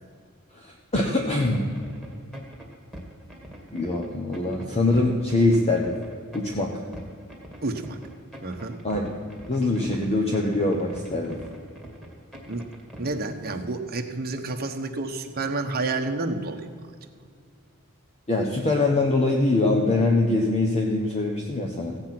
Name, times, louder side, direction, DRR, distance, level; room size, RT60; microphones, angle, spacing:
voice 1, 0.6-1.7 3.7-6.0 6.3-6.8 8.8-9.1 9.5-11.4 18.3-22.0, left 2 dB, 30° left, 0 dB, 1.1 m, -23 dB
sound 1, 0.9-13.3, equal, ahead, 2.2 m, -43 dB
voice 2, 7.6-8.0 8.4-8.8 12.4-12.6 13.0-16.7, right 3 dB, 45° right, 4 dB, 1.1 m, -29 dB
15.5 x 8.9 x 6.0 m, 2.2 s
head